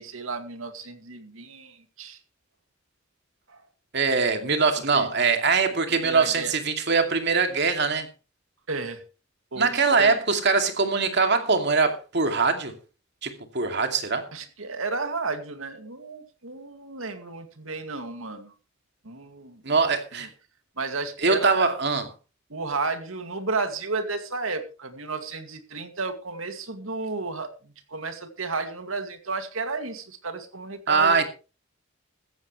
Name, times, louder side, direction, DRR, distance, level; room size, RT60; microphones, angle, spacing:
voice 1, 0.0-2.2 3.5-3.6 4.9-5.1 5.7-5.8 6.0-6.5 8.7-9.0 9.5-10.1 14.3-18.5 19.0-19.8 20.2-20.3 20.8-21.7 22.5-27.5 27.9-31.3, right 3 dB, 85° right, 2.3 m, -32 dB
voice 2, 3.9-8.1 9.6-12.7 13.2-14.2 19.6-20.3 21.2-22.1 30.9-31.3, right 4 dB, 55° right, 2.6 m, -22 dB
15.5 x 14.5 x 3.2 m
head